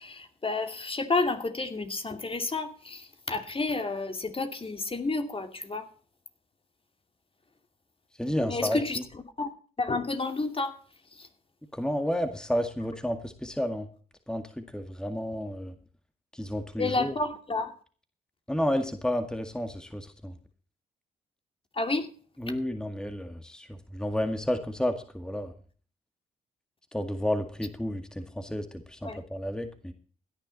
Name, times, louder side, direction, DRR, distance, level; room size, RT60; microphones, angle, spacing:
voice 1, 0.0-5.9 8.4-9.0 9.4-9.5 9.8-10.8 11.1-11.3 16.8-17.7 21.7-22.1 29.0-29.2, left 3 dB, 30° left, 7 dB, 2.6 m, -30 dB
voice 2, 8.2-8.8 11.7-13.9 14.3-15.8 16.3-17.1 18.5-20.4 22.4-25.5 26.9-29.9, equal, 5° left, 8 dB, 2.0 m, -31 dB
17.0 x 10.5 x 4.1 m, 0.42 s
hypercardioid pair, 50°, 18 cm